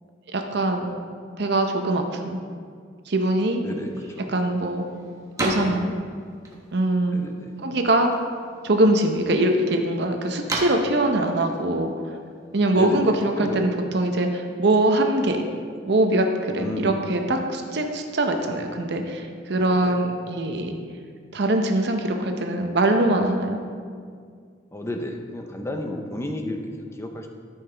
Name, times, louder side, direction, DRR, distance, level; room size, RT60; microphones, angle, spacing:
voice 1, 0.3-0.9 1.4-2.4 3.1-3.6 4.3-4.9 5.4-5.9 6.7-7.2 7.6-8.1 8.6-11.9 12.5-15.4 15.9-20.7 21.3-23.6, right 1 dB, 60° right, 4 dB, 0.7 m, -22 dB
voice 2, 3.6-4.3 7.1-7.5 12.7-13.6 16.5-17.0 19.7-20.0 24.7-27.3, left 1 dB, 15° left, 4 dB, 0.6 m, -32 dB
sound 1, 3.7-12.9, right 1 dB, 15° right, 1.0 m, -36 dB
13.0 x 5.6 x 3.4 m, 2.1 s
head